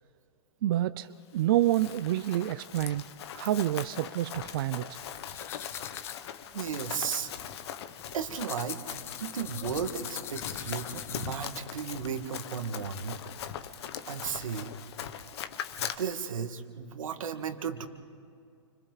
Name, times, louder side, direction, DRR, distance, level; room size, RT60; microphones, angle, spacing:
voice 1, 0.6-3.0 3.3-5.0, right 14 dB, 45° right, 14 dB, 0.4 m, -28 dB
Run, 1.4-15.9, left 9 dB, 55° left, 1.4 m, -41 dB
sound 1, 5.3-11.5, left 11 dB, 15° left, 0.4 m, -43 dB
voice 2, 6.5-7.3 8.1-8.8 9.2-13.2 14.1-14.7 15.8-17.9, right 7 dB, 85° right, 7 dB, 2.1 m, -34 dB
29.5 x 26.0 x 4.1 m, 2.3 s
hypercardioid pair, 155°, 17 cm